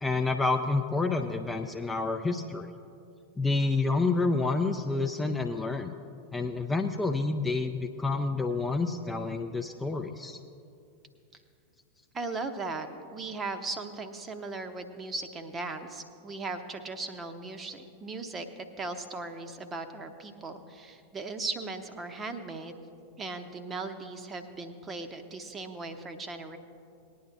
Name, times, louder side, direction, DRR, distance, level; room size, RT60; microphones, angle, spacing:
voice 1, 0.0-2.7 3.4-5.9 6.3-10.4, left 3 dB, 10° left, 4 dB, 0.5 m, -28 dB
voice 2, 12.1-22.8 23.2-26.6, right 3 dB, 20° right, 8 dB, 0.8 m, -38 dB
19.5 x 10.0 x 2.6 m, 2.6 s
figure-of-eight pair, 90°, 0 cm